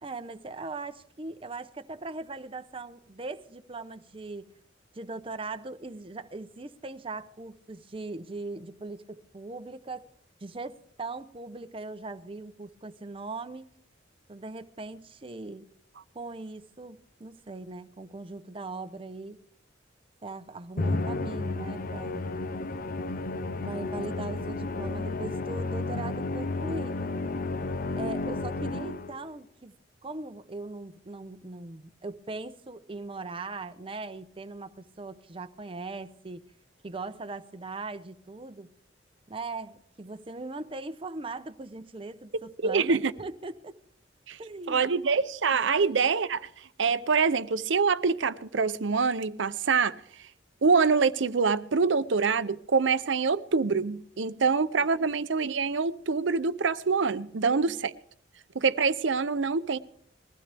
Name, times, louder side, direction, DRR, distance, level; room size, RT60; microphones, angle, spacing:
voice 1, 0.0-4.5 4.9-10.0 10.4-13.7 14.3-15.7 16.1-19.4 20.2-22.3 23.6-27.1 27.9-29.7 30.0-36.4 36.8-38.7 39.3-43.7 44.4-44.9 45.8-45.9 55.0-55.1 57.4-57.8, right 3 dB, 30° right, 0.7 m, -40 dB
Musical instrument, 20.8-29.3, left 2 dB, 50° left, 0.6 m, -32 dB
voice 2, 42.6-43.1 44.3-44.4 44.7-46.5 46.8-50.0 50.6-57.9 58.5-59.8, right 5 dB, 80° right, 0.7 m, -25 dB
21.0 x 15.5 x 3.4 m
head